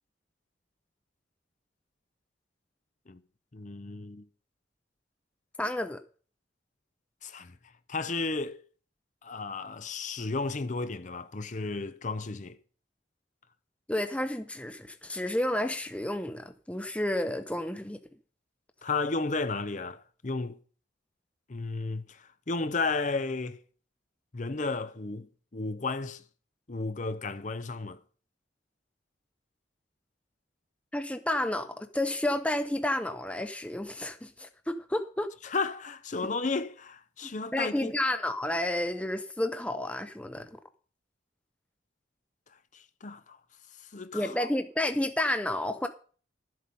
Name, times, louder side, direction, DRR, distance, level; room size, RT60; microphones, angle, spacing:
voice 1, 3.5-4.3 7.2-7.6 7.9-8.6 9.2-12.6 18.8-20.6 21.5-23.6 24.3-25.3 25.5-26.2 26.7-28.0 35.4-37.9 42.7-43.4 43.8-44.5, left 3 dB, 40° left, 0.7 m, -33 dB
voice 2, 5.6-6.0 13.9-18.0 30.9-35.3 37.2-40.6 44.1-45.9, left 1 dB, 5° left, 0.6 m, -31 dB
12.5 x 7.8 x 5.4 m
head